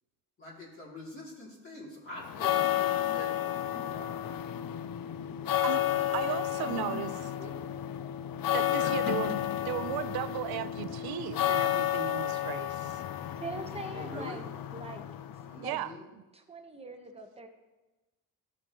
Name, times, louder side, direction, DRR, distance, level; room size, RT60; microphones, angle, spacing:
voice 1, 0.4-4.2 5.2-7.7 8.7-8.9 13.9-14.4 15.4-16.0, left 1 dB, 35° left, 2.8 m, -46 dB
sound 1, 2.2-15.7, left 12 dB, 65° left, 0.6 m, -32 dB
voice 2, 6.1-7.1 8.5-13.0 15.6-15.9, right 13 dB, 85° right, 0.6 m, -36 dB
voice 3, 13.4-14.5 14.7-15.1 15.5-15.8 16.3-17.5, right 2 dB, 15° right, 1.1 m, -42 dB
13.5 x 6.5 x 3.0 m
cardioid pair, 105°, 37 cm